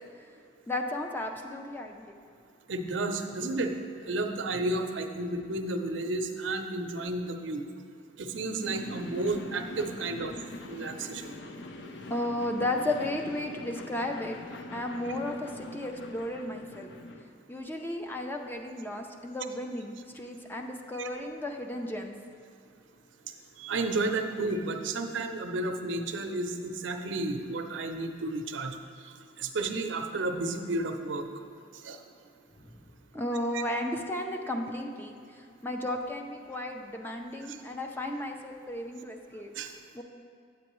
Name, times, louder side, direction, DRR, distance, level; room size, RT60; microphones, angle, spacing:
voice 1, 0.7-2.1 12.1-14.4 14.7-16.9 17.5-22.1 32.6-32.7 33.1-39.5 39.9-40.0, left 1 dB, 10° left, 3 dB, 0.4 m, -34 dB
voice 2, 2.7-3.8 4.1-7.6 8.2-10.3 10.7-11.3 21.0-21.1 23.6-28.8 29.4-31.2 31.8-32.0 33.5-33.6 37.5-37.6 39.6-39.7, right 2 dB, 85° right, 6 dB, 0.6 m, -32 dB
sound 1, 8.6-17.2, left 2 dB, 65° left, 0.5 m, -43 dB
8.5 x 8.1 x 3.0 m, 2.4 s
head